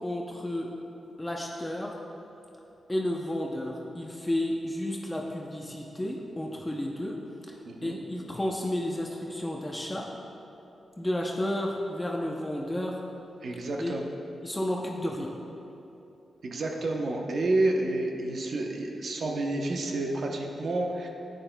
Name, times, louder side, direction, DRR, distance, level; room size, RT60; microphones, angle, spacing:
voice 1, 0.0-0.7 1.2-2.0 2.9-7.2 7.8-10.1 11.0-13.0 13.8-13.9 14.4-15.3, left 1 dB, 15° left, -1 dB, 0.7 m, -32 dB
voice 2, 7.7-8.0 13.4-14.0 16.4-21.1, right 2 dB, 65° right, 1 dB, 0.9 m, -29 dB
11.0 x 9.1 x 2.3 m, 2.9 s
wide cardioid pair, 105°, 0 cm